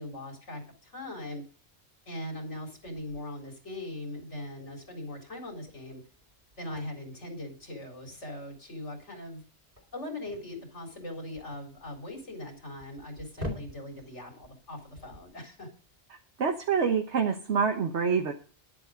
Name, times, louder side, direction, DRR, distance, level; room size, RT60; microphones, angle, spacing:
voice 1, 0.0-1.4 2.1-6.0 6.6-9.4 9.9-15.7, left 1 dB, 85° left, 3 dB, 4.5 m, -40 dB
sound 1, 2.8-16.0, left 1 dB, 50° right, 4.2 m, -47 dB
voice 2, 16.4-18.3, right 6 dB, 70° right, 4 dB, 1.5 m, -26 dB
11.0 x 10.5 x 5.2 m, 0.37 s
omnidirectional pair, 1.2 m